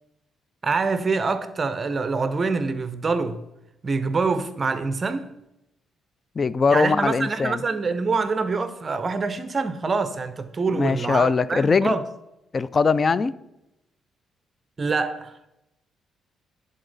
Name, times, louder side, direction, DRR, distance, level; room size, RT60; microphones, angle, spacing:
voice 1, 0.6-3.4 3.8-5.3 6.7-12.0 14.8-15.3, right 4 dB, 35° right, 0.6 m, -25 dB
voice 2, 6.4-7.6 10.7-12.0 12.5-13.3, left 4 dB, 35° left, 0.3 m, -21 dB
11.5 x 3.9 x 3.9 m
cardioid pair, 90°, 0 cm